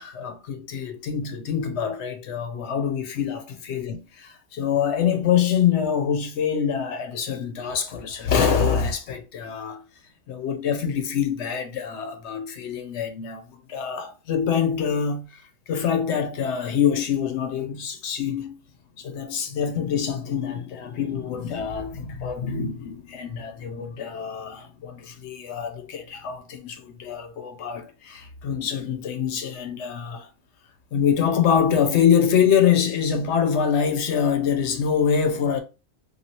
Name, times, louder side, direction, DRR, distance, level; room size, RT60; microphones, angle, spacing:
voice 1, 0.0-9.8 10.3-18.6 19.0-30.3 30.9-35.6, left 7 dB, 65° left, 0.8 m, -25 dB
3.1 x 2.5 x 2.8 m
omnidirectional pair, 1.4 m